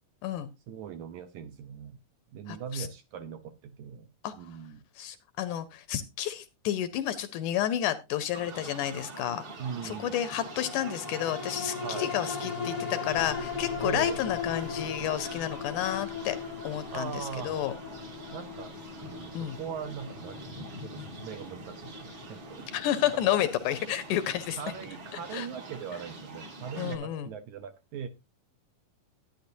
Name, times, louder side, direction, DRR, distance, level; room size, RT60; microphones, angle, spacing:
voice 1, 0.7-2.0 2.3-4.8 9.6-10.2 11.8-12.1 13.8-14.2 16.9-17.6 18.3-18.7 19.0-22.7 23.2-23.4 24.6-28.1, right 7 dB, 75° right, 7 dB, 1.9 m, -40 dB
voice 2, 2.5-2.9 4.2-4.3 5.0-9.5 9.8-16.4 16.6-17.7 19.3-19.6 22.7-24.6 25.3-25.5 26.8-27.3, left 11 dB, 75° left, 12 dB, 1.9 m, -31 dB
sound 1, 8.3-27.0, right 2 dB, 40° right, 1.8 m, -45 dB
sound 2, 10.3-25.0 25.4-25.5, left 5 dB, 45° left, 0.5 m, -39 dB
11.5 x 10.0 x 2.6 m, 0.24 s
omnidirectional pair, 4.0 m